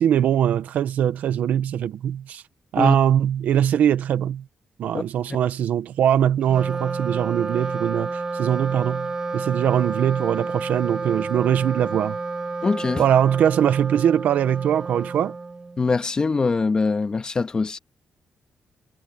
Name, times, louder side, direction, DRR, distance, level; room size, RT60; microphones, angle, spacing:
voice 1, 0.0-2.4 2.7-4.4 4.8-12.2 13.0-15.3, right 10 dB, 80° right, 1.3 m, -21 dB
Wind instrument woodwind instrument, 6.4-16.0, right 3 dB, 30° right, 2.2 m, -30 dB
voice 2, 12.6-13.0 15.8-17.8, left 4 dB, 30° left, 2.1 m, -23 dB
cardioid pair, 105°, 3 cm